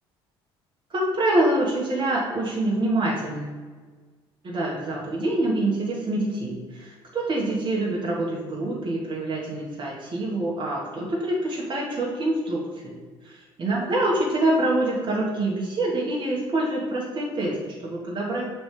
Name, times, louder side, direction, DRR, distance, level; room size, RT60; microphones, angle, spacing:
voice 1, 0.9-3.5 4.4-12.9 13.2-18.5, right 1 dB, 40° right, -4 dB, 1.4 m, -26 dB
6.0 x 3.4 x 4.9 m, 1.5 s
hypercardioid pair, 65°, 13 cm